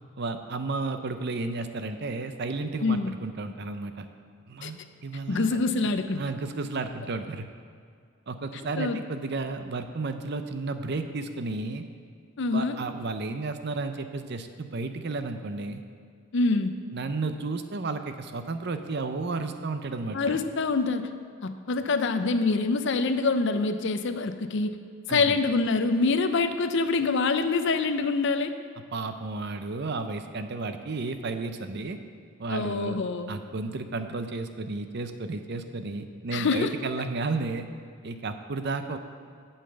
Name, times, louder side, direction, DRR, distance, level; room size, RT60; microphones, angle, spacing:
voice 1, 0.2-4.1 4.5-5.6 6.2-7.5 8.3-11.8 12.5-15.8 16.9-20.4 25.1-25.4 28.9-32.0 32.4-33.0 33.3-37.7 38.0-39.0, right 3 dB, 50° right, 8 dB, 0.6 m, -32 dB
voice 2, 2.8-3.1 4.6-4.7 5.3-6.2 8.8-9.0 12.4-12.8 16.3-16.7 20.1-21.1 21.4-24.8 25.1-28.5 32.5-33.3 36.3-36.7, left 3 dB, 55° left, 9 dB, 0.5 m, -25 dB
8.4 x 5.6 x 7.9 m, 2.2 s
head